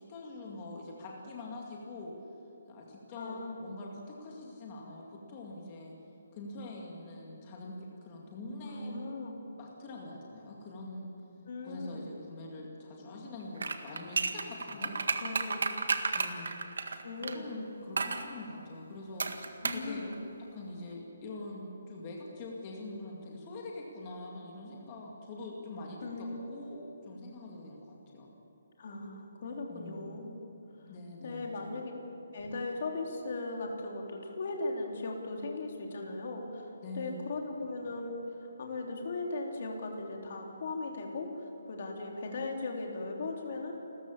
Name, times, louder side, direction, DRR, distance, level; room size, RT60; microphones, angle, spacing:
voice 1, 0.0-2.1 2.7-6.0 6.3-9.0 9.6-11.1 11.6-14.9 16.1-16.6 17.3-19.4 19.7-20.1 20.5-28.3 29.7-30.2 30.9-31.8 36.8-37.3, left 2 dB, 20° left, -2 dB, 2.2 m, -44 dB
voice 2, 3.1-3.6 8.6-9.4 11.5-12.0 14.7-15.8 17.0-17.5 19.6-20.2 26.0-26.5 28.8-30.4 30.8-30.9 31.2-31.9 32.3-43.7, left 3 dB, 40° left, 1 dB, 3.2 m, -38 dB
sound 1, 13.6-17.4 18.0-18.3 19.2-19.9 20.1-20.2, right 4 dB, 75° right, 1.7 m, -32 dB
29.0 x 14.0 x 7.3 m, 2.9 s
hypercardioid pair, 180°, 0 cm